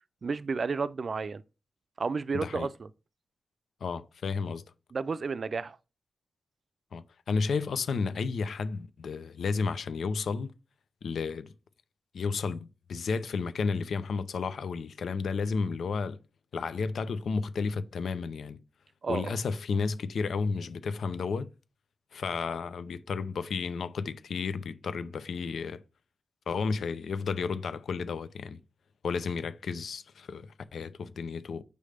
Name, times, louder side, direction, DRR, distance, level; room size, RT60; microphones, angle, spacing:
voice 1, 0.2-1.4 2.0-2.9 4.9-5.8 19.0-19.4, right 4 dB, 65° right, 0.4 m, -32 dB
voice 2, 2.3-2.7 3.8-4.6 6.9-10.5 11.0-11.5 12.1-16.2 16.5-18.6 19.1-21.5 22.1-25.8 26.5-28.6 29.0-31.6, left 5 dB, 85° left, 0.5 m, -32 dB
6.6 x 3.2 x 5.0 m
cardioid pair, 55°, 0 cm